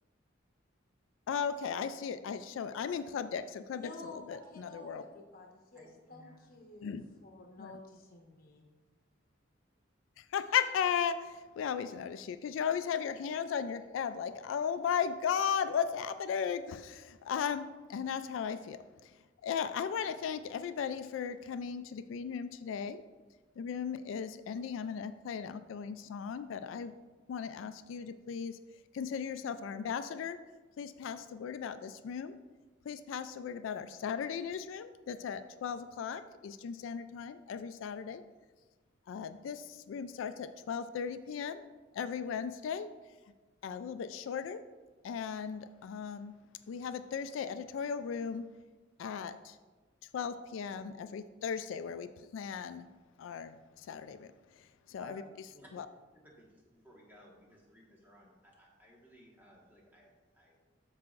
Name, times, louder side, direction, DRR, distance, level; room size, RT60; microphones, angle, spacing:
voice 1, 1.3-5.0 6.8-7.0 7.6-7.7 10.3-18.8 19.4-23.0 23.6-26.9 27.3-28.6 28.9-30.4 30.8-32.4 32.9-38.2 39.1-41.6 41.9-42.9 43.6-44.6 45.0-46.3 46.7-48.5 49.0-49.6 50.1-52.9 53.2-54.3 54.9-55.2 55.7-55.9, left 7 dB, 85° left, 11 dB, 0.3 m, -36 dB
voice 2, 3.7-8.6, left 2 dB, 50° left, 1 dB, 1.1 m, -51 dB
voice 3, 5.7-6.5 55.0-55.7 56.2-60.6, equal, 10° right, -4 dB, 1.4 m, -58 dB
13.0 x 4.8 x 2.5 m, 1.3 s
head